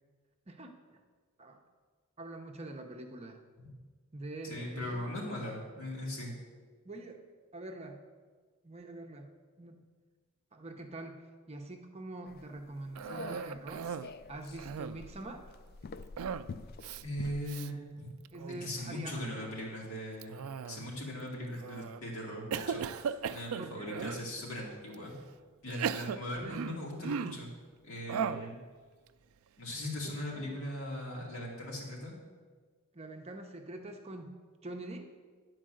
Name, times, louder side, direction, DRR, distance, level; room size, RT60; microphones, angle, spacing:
voice 1, 0.5-1.0 1.4-1.6 2.2-3.4 4.1-5.1 6.8-7.2 7.5-8.0 8.6-9.8 10.5-13.9 14.3-15.5 18.3-19.5 23.6-23.9 26.4-26.6 28.2-28.5 30.0-30.6 32.9-34.4 34.6-35.1, right 2 dB, 30° right, 4 dB, 0.7 m, -45 dB
voice 2, 4.4-6.4 17.0-18.1 18.6-25.2 25.6-27.5 27.8-28.6 29.6-32.1, left 1 dB, 65° left, -3 dB, 2.6 m, -39 dB
sound 1, 12.2-17.5, left 4 dB, 45° left, 0.3 m, -47 dB
Cough, 13.0-14.1 14.5-15.1 16.2-16.5 16.8-17.0 17.5-17.7 18.2-18.7 20.2-21.0 21.6-22.0 22.5-24.3 24.9-25.0 25.7-27.5 28.1-28.5, right 7 dB, 75° right, 0.3 m, -37 dB
10.5 x 4.6 x 7.7 m, 1.5 s
head